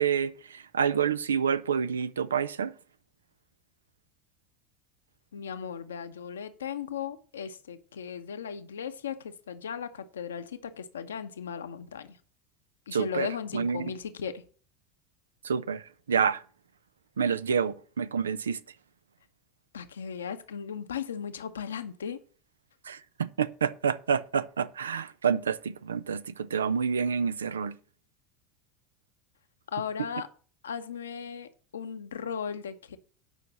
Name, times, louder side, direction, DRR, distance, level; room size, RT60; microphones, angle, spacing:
voice 1, 0.0-2.7 12.9-13.3 13.5-13.9 15.4-15.8 16.1-16.4 17.2-18.6 22.9-27.7, right 7 dB, 80° right, 0.5 m, -28 dB
voice 2, 5.3-12.2 12.9-14.4 19.7-22.2 29.7-30.3 30.6-33.0, left 7 dB, 75° left, 0.9 m, -37 dB
9.1 x 5.7 x 7.2 m
figure-of-eight pair, 75°, 0 cm